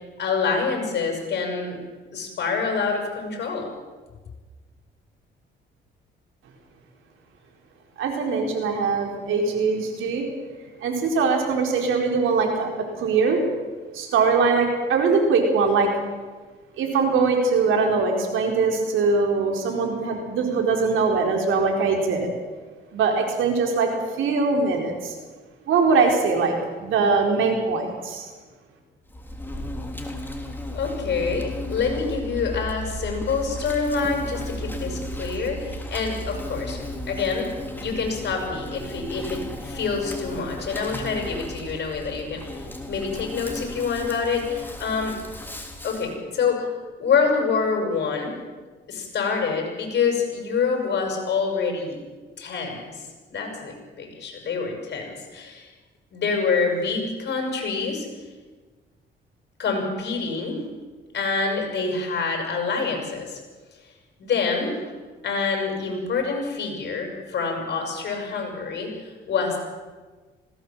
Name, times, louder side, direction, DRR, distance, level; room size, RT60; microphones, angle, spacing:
voice 1, 0.2-1.8 2.1-3.7 30.7-36.8 37.1-37.5 37.7-45.2 45.8-46.7 47.0-48.3 48.9-52.0 52.4-55.7 56.1-58.1 59.6-60.6 61.1-63.4 64.2-64.8 65.2-69.6, left 5 dB, 60° left, 2 dB, 6.9 m, -26 dB
voice 2, 8.0-10.2 10.8-13.4 13.9-15.9 16.8-22.3 22.9-25.1 25.7-28.3, right 4 dB, 85° right, 2 dB, 4.5 m, -22 dB
Insect, 29.1-46.1, left 1 dB, 10° left, 3.4 m, -34 dB
20.0 x 17.5 x 7.6 m, 1.4 s
cardioid pair, 90°, 20 cm